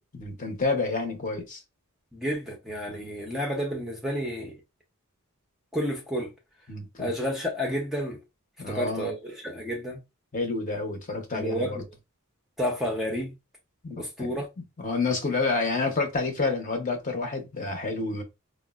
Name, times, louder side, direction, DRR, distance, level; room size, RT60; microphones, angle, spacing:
voice 1, 0.1-1.6 2.9-3.1 6.7-7.1 8.6-9.1 10.3-11.8 13.8-14.4 14.8-18.2, left 3 dB, 35° left, 0.7 m, -29 dB
voice 2, 2.1-4.6 5.7-6.3 7.0-8.2 8.7-10.0 11.3-11.8 12.6-13.3 14.0-14.5, equal, ahead, 0.5 m, -30 dB
4.6 x 2.0 x 2.3 m
head